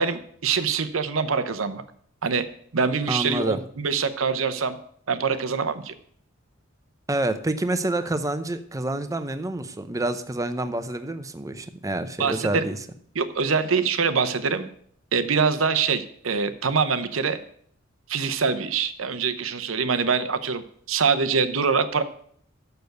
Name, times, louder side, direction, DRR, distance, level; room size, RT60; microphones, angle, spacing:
voice 1, 0.0-1.8 2.2-2.5 2.7-4.8 5.1-5.9 12.2-12.6 13.1-14.7 15.1-17.4 18.1-20.6 20.9-22.0, right 5 dB, 85° right, 11 dB, 0.8 m, -24 dB
voice 2, 3.1-3.6 7.1-12.8, right 2 dB, 15° right, 10 dB, 0.6 m, -28 dB
6.8 x 6.8 x 7.8 m, 0.62 s
head